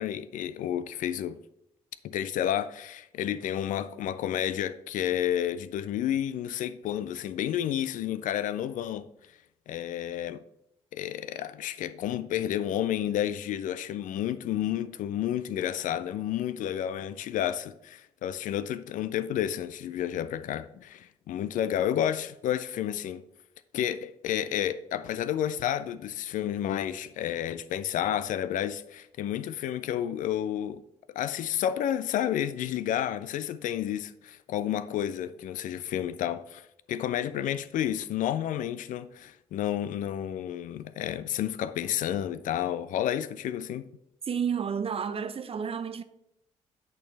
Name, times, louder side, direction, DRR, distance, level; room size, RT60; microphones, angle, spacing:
voice 1, 0.0-1.4 2.0-9.1 9.7-10.4 10.9-23.2 23.7-30.8 31.1-43.9, left 10 dB, 60° left, 0.4 m, -31 dB
voice 2, 44.3-46.0, right 7 dB, 40° right, 0.6 m, -31 dB
8.3 x 4.5 x 3.3 m
hypercardioid pair, 40°, 15 cm